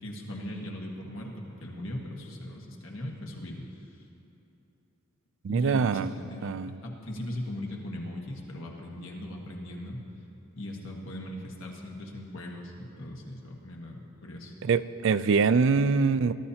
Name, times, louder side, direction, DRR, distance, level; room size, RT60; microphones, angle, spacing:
voice 1, 0.0-3.9 5.5-10.0 10.5-14.5, left 1 dB, 65° left, -1 dB, 1.5 m, -39 dB
voice 2, 5.4-6.1 6.4-6.7 14.6-16.3, right 5 dB, 55° right, 13 dB, 0.3 m, -24 dB
21.0 x 12.5 x 2.9 m, 3.0 s
head